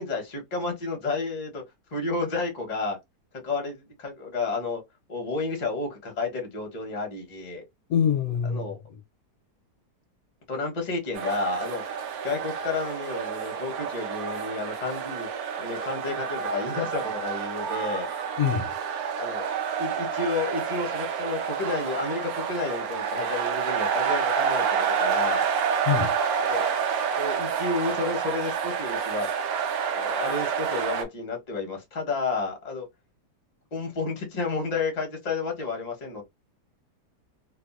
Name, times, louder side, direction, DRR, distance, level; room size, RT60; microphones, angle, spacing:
voice 1, 0.0-1.6 1.9-3.0 3.4-4.8 5.1-7.6 8.5-8.8 10.5-11.8 12.2-15.3 15.6-18.1 19.2-19.5 19.8-25.5 26.5-26.7 27.1-29.3 29.9-32.9 33.7-36.2, left 3 dB, 35° left, 0.8 m, -31 dB
voice 2, 7.9-9.0 18.4-18.7 25.8-26.1, left 8 dB, 65° left, 0.9 m, -25 dB
sound 1, 11.1-31.0, right 7 dB, 70° right, 1.1 m, -28 dB
2.7 x 2.6 x 2.3 m
omnidirectional pair, 1.8 m